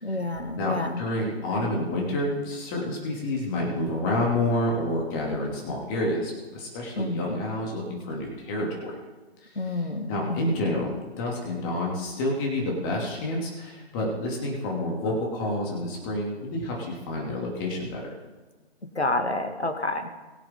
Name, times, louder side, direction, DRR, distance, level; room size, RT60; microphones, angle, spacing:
voice 1, 0.0-1.0 7.0-7.4 9.6-10.6 19.0-20.1, left 2 dB, 80° left, 7 dB, 1.9 m, -29 dB
voice 2, 0.6-8.9 9.4-18.0, left 1 dB, 20° left, -1 dB, 2.8 m, -29 dB
22.0 x 7.6 x 3.9 m, 1.2 s
figure-of-eight pair, 140°, 32 cm